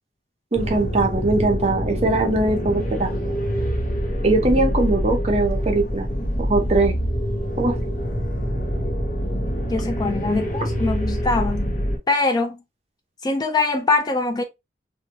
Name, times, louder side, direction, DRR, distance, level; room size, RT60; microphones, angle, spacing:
sound 1, 0.5-12.0, equal, 50° left, 0.7 m, -25 dB
voice 1, 0.5-3.4 4.2-6.1 6.4-6.9 7.6-7.8, right 2 dB, 35° right, 0.6 m, -21 dB
voice 2, 9.7-11.7 12.1-12.6 13.2-14.4, left 3 dB, 25° left, 0.3 m, -22 dB
2.7 x 2.2 x 2.8 m
head